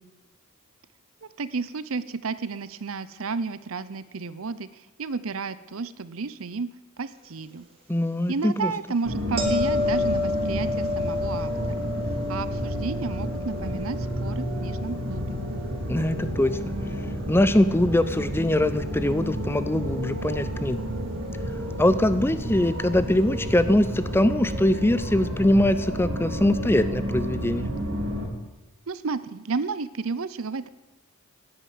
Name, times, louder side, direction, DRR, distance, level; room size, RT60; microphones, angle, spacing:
voice 1, 1.2-7.7 8.3-11.8 12.3-15.4 28.9-30.7, right 4 dB, 70° right, 15 dB, 0.7 m, -32 dB
voice 2, 7.9-8.7 15.9-16.8 17.3-20.8 21.8-27.7, left 1 dB, 10° left, 13 dB, 0.6 m, -22 dB
sound 1, 9.0-28.2, equal, 90° right, 3.5 m, -31 dB
sound 2, 9.4-16.4 21.6-21.8, left 3 dB, 25° right, 2.7 m, -31 dB
10.5 x 9.8 x 9.4 m, 1.1 s
head